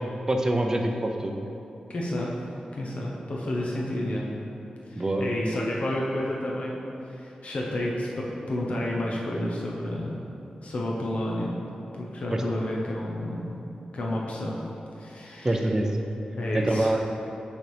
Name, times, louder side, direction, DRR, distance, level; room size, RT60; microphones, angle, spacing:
voice 1, 0.3-1.3 4.9-5.6 12.3-12.4 15.4-15.9 16.5-17.0, right 1 dB, 20° right, 3 dB, 0.5 m, -25 dB
voice 2, 1.9-2.3 2.7-4.3 4.9-6.8 7.1-10.3 10.6-11.6 11.9-13.6 13.9-14.6 15.0-15.7 16.4-17.0, left 1 dB, 60° left, -3 dB, 0.8 m, -30 dB
6.5 x 5.2 x 3.3 m, 2.8 s
wide cardioid pair, 90°, 3 cm